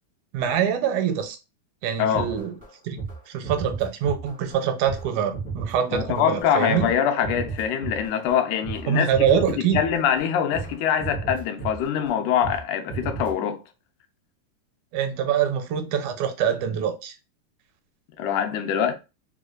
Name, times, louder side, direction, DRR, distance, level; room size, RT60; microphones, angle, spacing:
voice 1, 0.3-1.4 1.8-2.5 2.8-3.0 3.3-6.9 8.9-9.8 14.9-17.2, right 8 dB, 80° right, 2.0 m, -24 dB
voice 2, 2.0-2.4 5.9-13.6 18.2-18.9, left 8 dB, 80° left, 2.0 m, -24 dB
sound 1, 2.1-2.7 3.0-3.2 3.4-4.6 4.8-12.6 12.9-13.3, right 4 dB, 15° right, 0.3 m, -34 dB
4.9 x 2.2 x 2.3 m
omnidirectional pair, 3.6 m